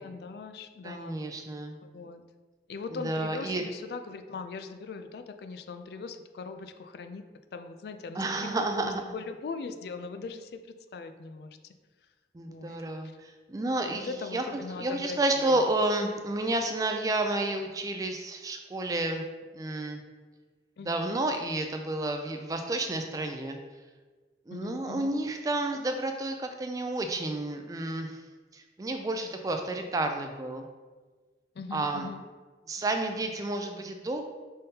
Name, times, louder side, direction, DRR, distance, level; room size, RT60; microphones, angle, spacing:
voice 1, 0.0-1.1 1.9-2.2 2.7-7.2 7.5-10.6 10.9-11.5 12.5-12.8 13.9-15.6 20.8-21.1 24.5-25.1 31.6-32.2, left 4 dB, 65° left, 8 dB, 0.3 m, -40 dB
voice 2, 0.8-1.8 2.9-3.6 8.2-9.0 12.3-14.4 14.8-19.2 19.5-20.0 20.9-23.6 24.5-28.2 28.5-30.7 31.7-32.1 32.7-34.2, right 2 dB, 20° right, 5 dB, 0.3 m, -30 dB
5.3 x 3.6 x 2.8 m, 1.4 s
head